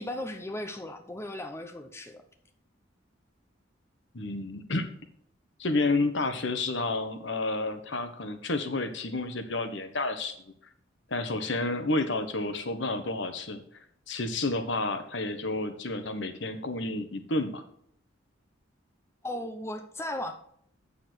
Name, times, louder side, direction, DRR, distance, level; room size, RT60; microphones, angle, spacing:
voice 1, 0.0-2.2 19.2-20.3, left 1 dB, 15° left, 6 dB, 0.8 m, -36 dB
voice 2, 4.1-4.9 5.6-10.3 11.1-13.6 14.1-17.6, left 2 dB, 70° left, 8 dB, 1.2 m, -30 dB
8.4 x 7.1 x 4.4 m, 0.67 s
head